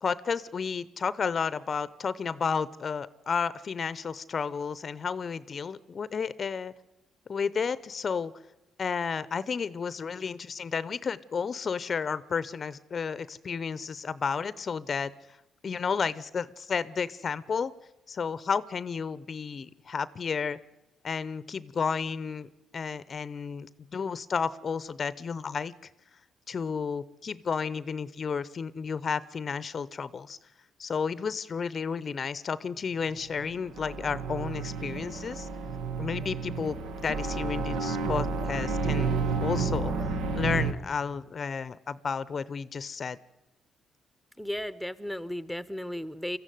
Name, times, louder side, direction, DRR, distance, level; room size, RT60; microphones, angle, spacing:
voice 1, 0.0-6.7 7.3-8.3 8.8-15.1 15.6-17.7 18.1-20.6 21.0-25.9 26.5-30.4 30.8-35.5 36.0-40.1 40.4-43.2, left 6 dB, 45° left, 18 dB, 0.7 m, -32 dB
sound 1, 33.3-40.7, right 4 dB, 85° right, 1.6 m, -31 dB
voice 2, 44.4-46.4, equal, ahead, 15 dB, 0.9 m, -35 dB
23.0 x 14.5 x 9.3 m, 0.98 s
cardioid pair, 90°, 0 cm